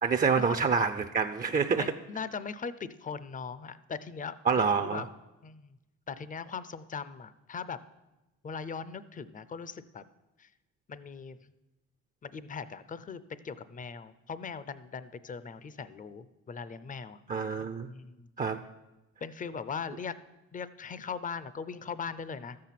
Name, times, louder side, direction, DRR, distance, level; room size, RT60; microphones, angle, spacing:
voice 1, 0.0-1.9 4.5-5.0 17.3-17.9 18.4-18.6, right 5 dB, 30° right, 7 dB, 0.5 m, -27 dB
voice 2, 1.8-5.1 5.4-5.8 6.1-7.8 8.4-10.0 10.4-10.5 10.9-11.4 12.2-17.2 17.8-18.3 19.2-20.2 20.5-22.6, left 6 dB, 25° left, 15 dB, 0.5 m, -40 dB
13.0 x 7.5 x 5.8 m, 1.0 s
cardioid pair, 90°, 30 cm